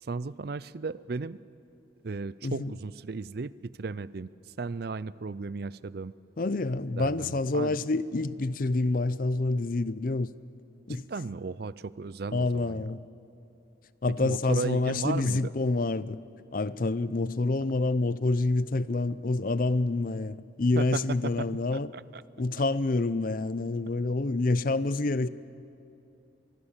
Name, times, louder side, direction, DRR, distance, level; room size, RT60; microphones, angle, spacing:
voice 1, 0.0-1.4 2.0-6.1 7.0-7.8 10.9-12.9 14.1-15.5 20.8-22.2, right 4 dB, 55° right, 0.5 m, -35 dB
voice 2, 2.4-2.7 6.4-10.3 10.9-11.0 12.3-13.0 14.0-16.2 16.5-21.9 22.4-25.3, left 2 dB, 45° left, 0.5 m, -27 dB
24.5 x 21.0 x 7.3 m
head